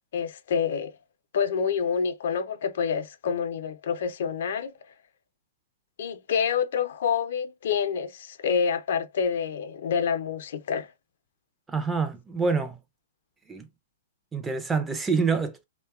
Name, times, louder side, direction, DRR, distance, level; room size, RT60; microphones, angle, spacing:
voice 1, 0.1-0.9 1.3-4.7 6.0-10.9, left 6 dB, 65° left, 0.4 m, -27 dB
voice 2, 11.7-12.8 13.5-13.7 14.3-15.6, right 4 dB, 10° right, 0.4 m, -26 dB
2.7 x 2.1 x 2.3 m
hypercardioid pair, 125°, 0 cm